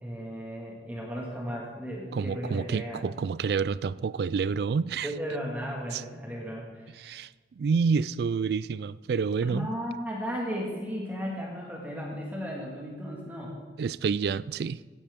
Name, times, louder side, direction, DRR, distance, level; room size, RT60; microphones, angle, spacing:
voice 1, 0.0-3.0 5.0-7.1 9.5-13.6, equal, 10° right, 1.9 m, -35 dB
voice 2, 2.1-5.1 5.9-6.0 7.0-7.3 7.6-9.7 13.8-14.8, right 5 dB, 60° right, 0.3 m, -28 dB
16.0 x 10.0 x 3.6 m
head